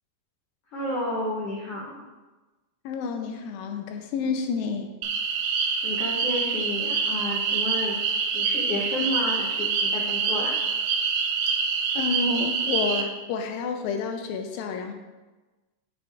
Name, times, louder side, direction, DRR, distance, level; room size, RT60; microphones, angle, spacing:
voice 1, 0.7-2.0 5.8-8.0 8.3-10.6, left 1 dB, 75° left, -5 dB, 1.4 m, -31 dB
voice 2, 2.8-4.9 12.0-14.9, left 4 dB, 90° left, 5 dB, 2.5 m, -29 dB
sound 1, 5.0-13.0, right 5 dB, 80° right, 2.1 m, -26 dB
7.4 x 5.2 x 3.3 m, 1.2 s
omnidirectional pair, 4.0 m